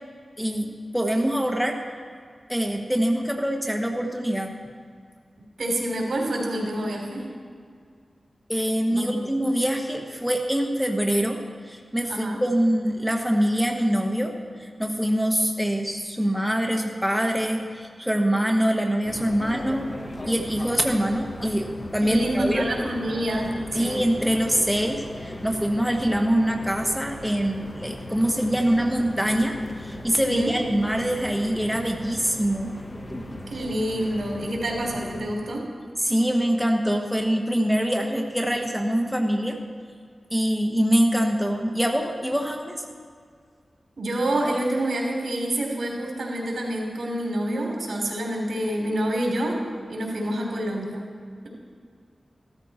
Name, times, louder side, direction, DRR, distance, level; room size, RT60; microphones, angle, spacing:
voice 1, 0.4-0.7 0.9-1.8 2.5-4.5 8.5-14.3 14.6-19.9 20.3-22.7 23.7-32.7 36.0-39.6 40.3-42.8, equal, ahead, 2 dB, 1.3 m, -24 dB
voice 2, 5.6-7.2 8.9-9.2 12.1-12.4 22.0-24.0 30.2-30.5 33.5-35.6 44.0-49.6 49.9-51.0, right 1 dB, 80° right, -1 dB, 3.3 m, -27 dB
sound 1, 19.0-35.3, left 1 dB, 30° left, 1.3 m, -38 dB
15.0 x 13.5 x 4.3 m, 2.1 s
wide cardioid pair, 80°, 0 cm